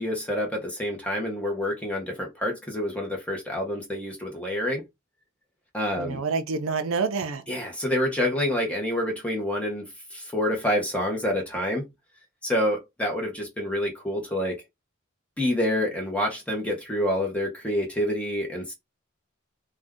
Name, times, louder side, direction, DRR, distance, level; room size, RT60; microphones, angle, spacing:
voice 1, 0.0-4.8 5.7-6.2 7.5-9.8 10.1-11.9 12.4-14.6 15.4-18.7, left 1 dB, 5° left, 0.8 m, -27 dB
voice 2, 6.0-7.4, right 4 dB, 75° right, 0.5 m, -27 dB
2.6 x 2.3 x 3.4 m
head